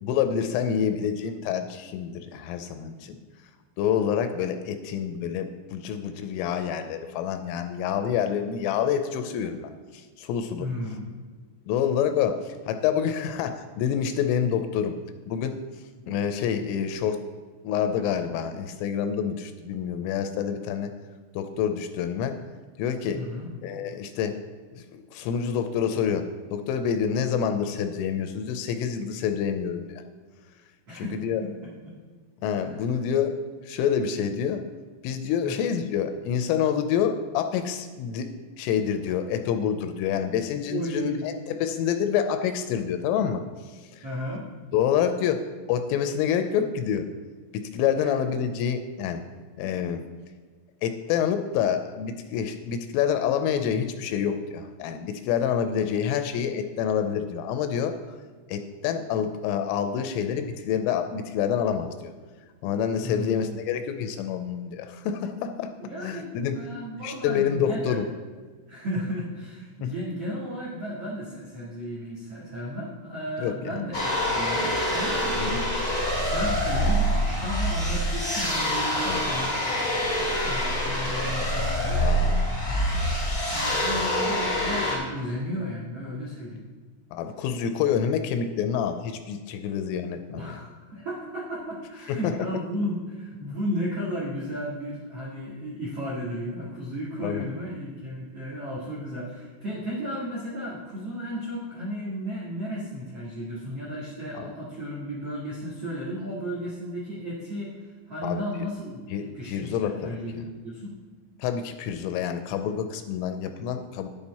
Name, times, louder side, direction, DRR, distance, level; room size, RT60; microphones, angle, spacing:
voice 1, 0.0-3.2 3.8-10.7 11.7-14.9 15.3-15.6 16.1-17.2 17.6-20.9 21.4-22.3 22.8-23.2 23.6-24.4 24.9-26.2 26.5-30.0 30.9-31.4 32.4-33.4 33.6-34.6 35.0-38.3 38.6-43.4 43.9-44.1 44.7-47.1 47.5-49.2 49.6-50.0 50.8-58.0 58.5-62.1 62.6-65.7 66.0-66.6 67.0-68.1 69.8-69.9 73.4-73.7 75.3-75.6 79.1-79.2 82.0-82.5 87.1-90.6 92.1-92.3 97.2-97.5 104.4-104.5 108.2-108.4 109.1-110.2 111.4-114.1, left 8 dB, 85° left, 8 dB, 3.1 m, -27 dB
voice 2, 10.6-11.0 23.1-23.5 30.9-31.1 31.4-31.5 31.8-31.9 32.6-32.8 35.4-35.5 40.6-41.2 44.0-44.5 48.0-48.1 63.0-63.6 65.8-68.0 68.7-86.6 90.3-110.9, equal, 75° right, -4 dB, 1.4 m, -34 dB
sound 1, 73.9-85.0, equal, 25° left, 0.9 m, -25 dB
9.9 x 8.9 x 4.2 m, 1.4 s
omnidirectional pair, 5.9 m